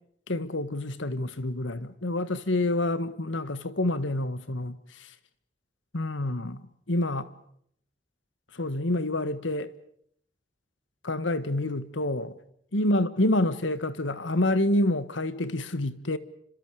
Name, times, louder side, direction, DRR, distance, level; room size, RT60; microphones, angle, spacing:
voice 1, 0.3-4.8 5.9-7.3 8.5-9.7 11.0-12.3 12.7-16.2, left 1 dB, 85° left, 1.7 m, -27 dB
30.0 x 26.5 x 5.0 m
head